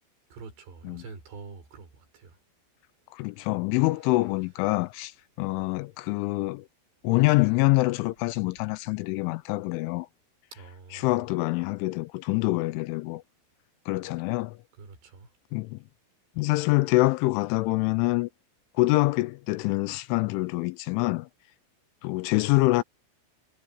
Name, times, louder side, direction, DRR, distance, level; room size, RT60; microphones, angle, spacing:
voice 1, 0.3-2.4 5.5-5.7 10.5-11.2 14.8-15.3, right 4 dB, 60° right, 7.8 m, -46 dB
voice 2, 3.1-6.7 7.0-10.1 10.9-13.2 13.9-14.6 15.5-15.8 16.4-18.3 18.7-21.3 22.0-22.8, left 22 dB, 85° left, 2.9 m, -25 dB
omnidirectional pair, 5.8 m